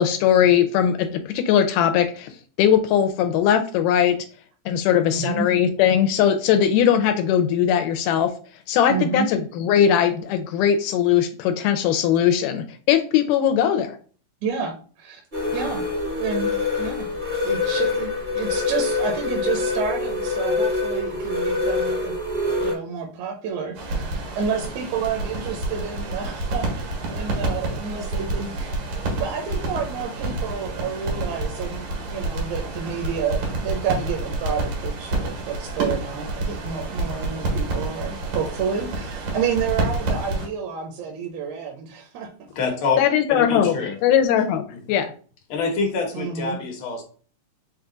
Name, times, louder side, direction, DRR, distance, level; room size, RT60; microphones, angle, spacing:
voice 1, 0.0-2.3 2.6-4.2 4.7-8.3 8.7-14.0 43.0-43.7 44.0-45.1, left 9 dB, 85° left, 7 dB, 2.1 m, -20 dB
voice 2, 5.1-5.5 8.9-9.3 14.4-15.2 15.5-15.8 16.2-16.5 16.8-17.1 17.4-22.1 22.6-42.3 43.4-43.7 46.1-46.6, right 6 dB, 75° right, 1 dB, 1.9 m, -29 dB
sound 1, 15.3-22.7, left 3 dB, 45° right, 0.9 m, -25 dB
sound 2, 23.7-40.5, right 2 dB, 90° right, 3.2 m, -28 dB
voice 3, 42.5-43.0 43.3-44.0 44.7-44.8 45.5-47.0, left 4 dB, 60° left, 1 dB, 1.3 m, -26 dB
5.9 x 2.4 x 3.8 m, 0.41 s
omnidirectional pair, 3.7 m